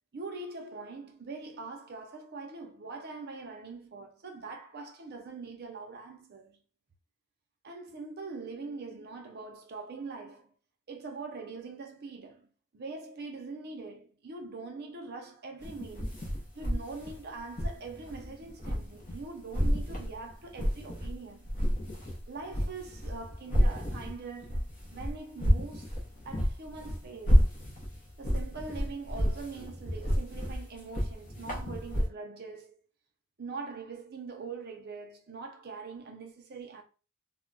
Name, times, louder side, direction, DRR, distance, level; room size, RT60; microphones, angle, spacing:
voice 1, 0.1-6.6 7.6-10.5 10.9-16.2 16.5-21.6 22.3-26.0 26.2-27.4 28.2-32.8 33.4-36.8, right 4 dB, 45° right, 0.6 m, -43 dB
sound 1, 15.6-19.2 19.5-21.1 21.4-32.1, equal, 35° left, 0.7 m, -30 dB
2.2 x 2.2 x 3.8 m
head